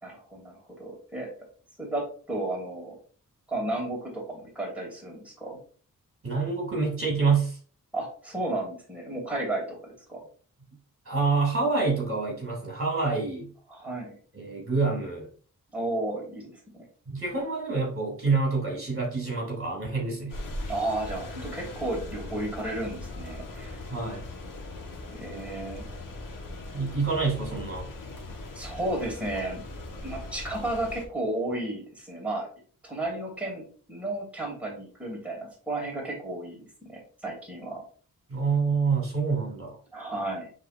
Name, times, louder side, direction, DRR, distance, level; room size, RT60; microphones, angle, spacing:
voice 1, 0.0-1.3 1.8-3.0 3.5-5.6 7.9-10.2 13.7-14.2 15.7-16.8 20.7-23.8 25.1-25.8 28.5-29.6 30.0-32.5 32.8-33.6 33.9-36.6 36.9-37.8 39.9-40.5, right 1 dB, 5° right, -2 dB, 2.8 m, -33 dB
voice 2, 6.2-7.6 11.1-13.5 14.3-15.3 17.1-20.4 23.9-24.2 26.7-27.9 38.3-39.8, right 4 dB, 40° right, -2 dB, 2.7 m, -27 dB
sound 1, 20.3-31.1, left 2 dB, 70° left, 1.4 m, -40 dB
9.8 x 3.7 x 2.6 m, 0.42 s
wide cardioid pair, 95°, 34 cm